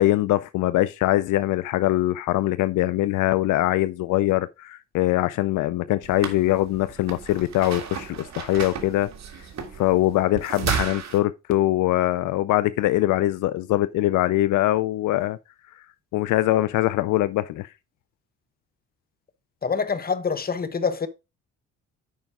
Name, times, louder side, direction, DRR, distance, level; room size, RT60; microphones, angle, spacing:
voice 1, 0.0-9.1 9.8-15.4 16.1-17.7, left 16 dB, 85° left, 0.6 m, -22 dB
sound 1, 6.0-11.2, right 7 dB, 60° right, 2.0 m, -33 dB
voice 2, 19.6-21.1, left 5 dB, 30° left, 1.3 m, -26 dB
9.5 x 5.3 x 3.7 m
cardioid pair, 90°, 30 cm